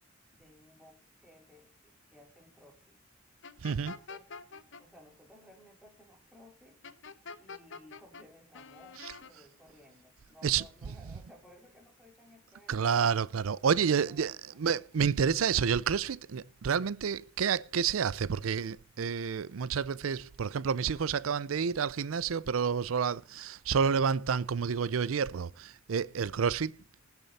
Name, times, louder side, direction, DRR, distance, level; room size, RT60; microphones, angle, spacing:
voice 1, 0.3-3.0 3.7-4.3 4.8-6.8 7.4-13.3 13.6-14.7, left 1 dB, 5° right, 4.2 m, -58 dB
sound 1, 3.4-4.8 6.8-8.2 8.5-9.3, left 4 dB, 65° left, 1.0 m, -46 dB
voice 2, 3.6-3.9 10.4-10.6 12.7-26.7, right 6 dB, 85° right, 0.5 m, -29 dB
19.5 x 7.0 x 4.2 m
head